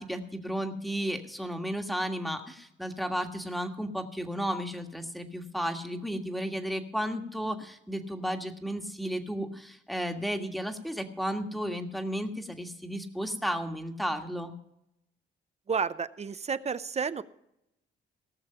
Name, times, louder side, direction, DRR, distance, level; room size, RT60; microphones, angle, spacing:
voice 1, 0.0-14.5, equal, ahead, 5 dB, 1.7 m, -33 dB
voice 2, 15.7-17.2, right 6 dB, 35° right, 14 dB, 0.6 m, -31 dB
18.5 x 6.7 x 5.7 m, 0.81 s
cardioid pair, 90°, 20 cm